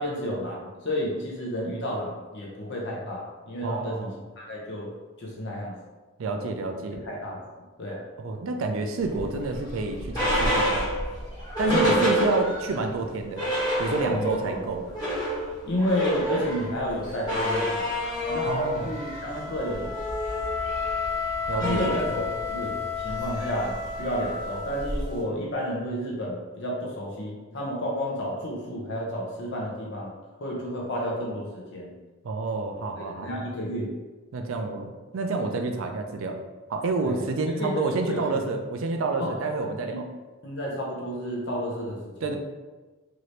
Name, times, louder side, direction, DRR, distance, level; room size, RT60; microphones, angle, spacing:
voice 1, 0.0-4.1 4.4-4.9 5.2-5.8 7.0-7.4 7.8-8.0 11.7-12.0 14.0-14.6 15.6-17.8 18.2-19.9 21.6-30.1 30.4-31.9 32.9-33.9 37.1-37.2 37.6-38.2 39.2-40.0 40.4-42.3, equal, 55° left, -3 dB, 0.6 m, -31 dB
voice 2, 3.6-4.2 6.2-7.0 8.2-10.9 11.6-13.5 13.8-14.8 18.5-18.9 21.5-22.0 32.2-33.4 34.3-36.4 36.7-40.1 42.2-42.4, right 3 dB, 65° right, 4 dB, 0.4 m, -28 dB
sound 1, 9.1-12.8 13.1-13.2 13.4-14.4 14.8-25.2, equal, 20° left, 1.1 m, -29 dB
Wind instrument woodwind instrument, 17.3-25.3, left 5 dB, 30° right, 0.8 m, -34 dB
2.8 x 2.6 x 3.1 m, 1.2 s
head